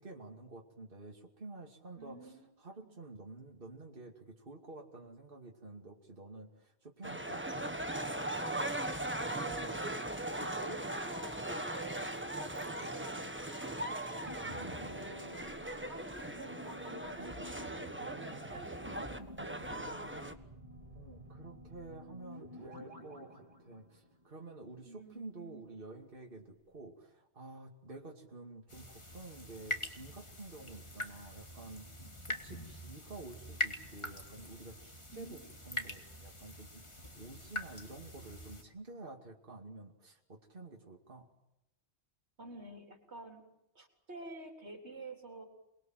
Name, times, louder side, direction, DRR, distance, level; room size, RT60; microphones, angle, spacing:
voice 1, 0.0-7.8 14.4-14.8 20.9-31.8 32.3-41.3, right 2 dB, 55° right, 1 dB, 2.8 m, -50 dB
voice 2, 2.0-2.5 2.8-2.9 9.3-9.9 10.3-13.9 14.7-19.7 24.8-25.7 35.1-35.5 42.4-43.4 43.7-45.5, right 3 dB, 85° right, 3 dB, 4.2 m, -49 dB
sound 1, 7.0-20.3, right 1 dB, 10° right, 1.4 m, -39 dB
sound 2, 12.5-24.5 24.8-24.9, equal, 30° right, 3.8 m, -51 dB
sound 3, 28.7-38.6, left 1 dB, 25° left, 2.3 m, -43 dB
28.5 x 21.5 x 7.7 m, 0.87 s
omnidirectional pair, 1.1 m